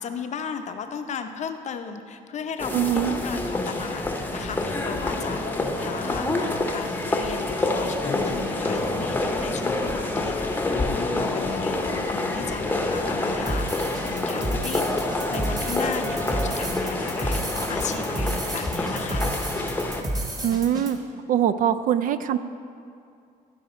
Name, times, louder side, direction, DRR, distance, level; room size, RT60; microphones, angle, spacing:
voice 1, 0.0-4.0 4.3-14.8 15.3-19.3, left 6 dB, 45° left, 7 dB, 0.6 m, -35 dB
sound 1, 2.6-20.0, left 2 dB, 10° left, 0.8 m, -27 dB
voice 2, 2.7-3.2 20.4-21.0 21.3-22.4, right 10 dB, 55° right, 13 dB, 0.4 m, -22 dB
sound 2, 4.8-9.9 10.2-13.2, left 6 dB, 85° left, 0.8 m, -38 dB
sound 3, 13.5-20.9, right 1 dB, 20° right, 1.3 m, -31 dB
14.0 x 4.9 x 4.3 m, 2.4 s
cardioid pair, 110°, 17 cm